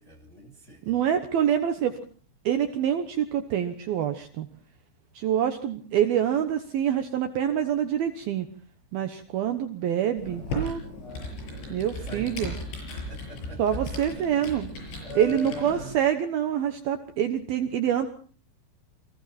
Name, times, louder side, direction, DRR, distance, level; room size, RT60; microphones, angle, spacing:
voice 1, 0.0-1.0 12.0-12.5 12.8-14.4 14.7-16.0, left 2 dB, 20° left, 1 dB, 2.3 m, -42 dB
voice 2, 0.9-2.0 2.5-4.5 5.1-8.5 8.9-10.8 11.7-12.5 13.6-14.7 15.2-18.1, right 9 dB, 70° right, 8 dB, 2.5 m, -26 dB
Computer keyboard, 10.2-16.0, left 1 dB, 70° left, 9.1 m, -36 dB
29.0 x 21.5 x 4.2 m, 0.44 s
omnidirectional pair, 5.5 m